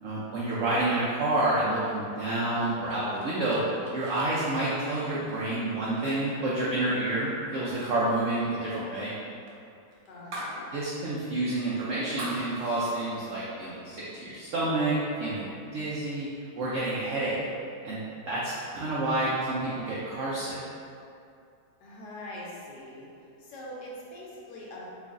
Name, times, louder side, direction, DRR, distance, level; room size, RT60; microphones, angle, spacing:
voice 1, 0.0-3.6 3.9-9.1 10.7-16.3 16.5-17.3 17.8-18.0 18.3-20.6, right 2 dB, 85° right, -7 dB, 0.6 m, -29 dB
sound 1, 2.6-7.2 7.6-7.9 8.2-10.6 11.0-11.1 11.5-13.1, right 1 dB, 65° right, 1.0 m, -43 dB
voice 2, 10.1-10.7 21.8-23.1 23.4-24.8, left 1 dB, 70° left, -5 dB, 1.2 m, -42 dB
3.0 x 2.4 x 3.6 m, 2.5 s
omnidirectional pair, 1.9 m